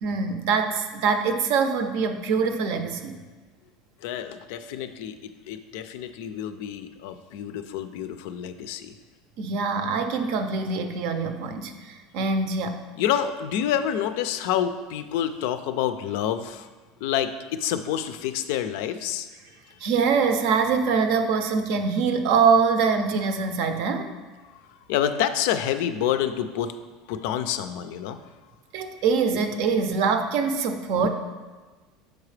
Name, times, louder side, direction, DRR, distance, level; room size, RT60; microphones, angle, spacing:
voice 1, 0.0-3.2 9.4-12.8 19.8-24.1 28.7-31.1, right 5 dB, 60° right, 7 dB, 0.5 m, -24 dB
voice 2, 4.0-8.9 13.0-16.7 17.0-19.3 24.9-26.7 27.1-28.2 31.0-31.1, left 10 dB, 70° left, 10 dB, 0.4 m, -28 dB
6.4 x 4.8 x 3.3 m, 1.3 s
cardioid pair, 155°, 0 cm